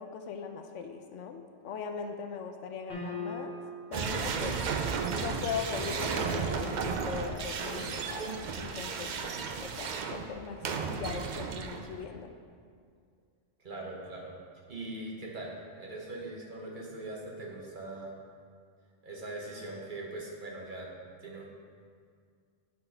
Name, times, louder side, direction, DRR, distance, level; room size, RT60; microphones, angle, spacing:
voice 1, 0.0-3.6 3.9-4.6 5.2-9.3 9.6-12.3, left 6 dB, 80° left, 5 dB, 0.9 m, -39 dB
sound 1, 2.9-4.0, left 3 dB, 50° left, 1.6 m, -39 dB
sound 2, 3.9-12.1, right 5 dB, 65° right, 0.4 m, -34 dB
voice 2, 13.6-14.4 14.7-18.2 19.0-20.9 21.2-21.5, right 2 dB, 45° right, -2 dB, 1.1 m, -41 dB
7.8 x 4.1 x 5.4 m, 2.1 s
omnidirectional pair, 1.3 m